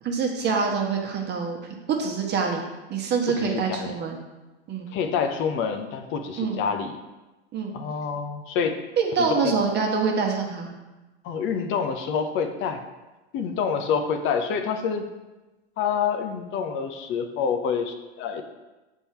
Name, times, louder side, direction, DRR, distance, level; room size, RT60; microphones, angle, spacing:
voice 1, 0.0-1.6 1.9-2.6 2.9-4.2 4.7-4.9 6.4-6.6 7.5-7.8 9.0-10.7, right 5 dB, 30° right, 1 dB, 1.2 m, -25 dB
voice 2, 3.4-3.9 4.9-6.9 7.7-8.8 9.4-9.5 11.2-12.8 13.3-15.1 15.8-18.4, left 6 dB, 35° left, 6 dB, 0.7 m, -27 dB
6.9 x 3.6 x 4.4 m, 1.1 s
hypercardioid pair, 95°, 33 cm